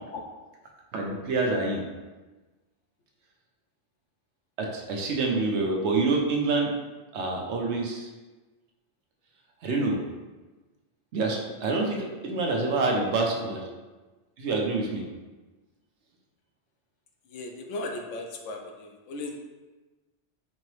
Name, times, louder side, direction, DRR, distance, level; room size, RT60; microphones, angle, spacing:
voice 1, 0.9-1.8 4.6-6.7 7.1-8.1 9.6-10.0 11.1-13.6 14.4-15.0, right 3 dB, 70° right, 0 dB, 0.9 m, -27 dB
voice 2, 17.3-19.3, left 2 dB, 80° left, 2 dB, 1.0 m, -36 dB
4.4 x 2.9 x 3.1 m, 1.2 s
omnidirectional pair, 1.2 m